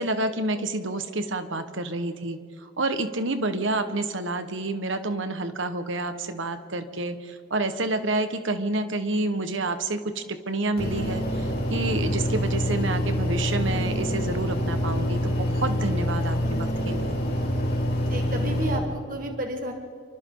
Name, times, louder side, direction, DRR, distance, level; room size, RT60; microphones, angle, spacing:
voice 1, 0.0-17.2, right 2 dB, 80° right, 9 dB, 1.5 m, -29 dB
sound 1, 10.8-18.8, equal, 50° left, 4.0 m, -26 dB
voice 2, 18.1-19.7, right 1 dB, 45° right, 3 dB, 1.9 m, -31 dB
27.5 x 24.5 x 4.0 m, 2.1 s
head